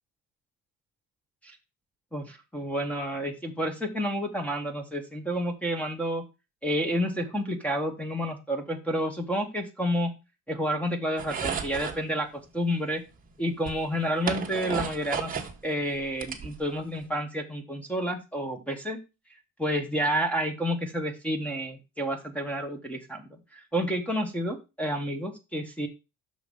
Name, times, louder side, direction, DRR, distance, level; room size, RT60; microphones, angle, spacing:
voice 1, 2.1-6.2 6.6-10.1 10.5-12.3 12.5-13.0 13.4-19.0 19.6-25.9, equal, 5° left, 5 dB, 1.0 m, -30 dB
sound 1, 11.2-12.0 13.2-13.3 13.7-15.6 15.9-17.0, right 6 dB, 25° right, 1.1 m, -33 dB
6.3 x 4.8 x 5.3 m, 0.26 s
cardioid pair, 175°, 35 cm